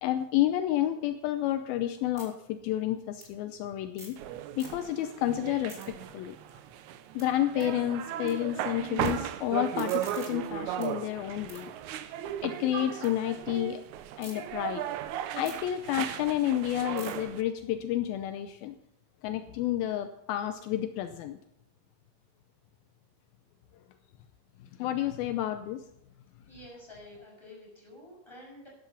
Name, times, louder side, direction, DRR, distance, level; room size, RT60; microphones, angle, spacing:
voice 1, 0.0-4.2 4.6-5.8 6.1-6.4 7.1-11.8 12.4-13.8 14.2-14.8 15.4-18.8 19.2-21.4 24.8-25.8, left 12 dB, 80° left, 8 dB, 2.5 m, -30 dB
sound 1, 1.3-4.3 4.5-5.1 5.4-8.3 8.6-9.1 9.5-13.1 13.5-14.3 14.8-19.0, right 1 dB, 20° right, 4.2 m, -54 dB
sound 2, 4.2-17.4, right 11 dB, 80° right, 1.7 m, -36 dB
voice 2, 26.5-28.7, left 1 dB, 5° left, -3 dB, 7.0 m, -49 dB
13.5 x 11.5 x 5.7 m, 0.78 s
omnidirectional pair, 4.3 m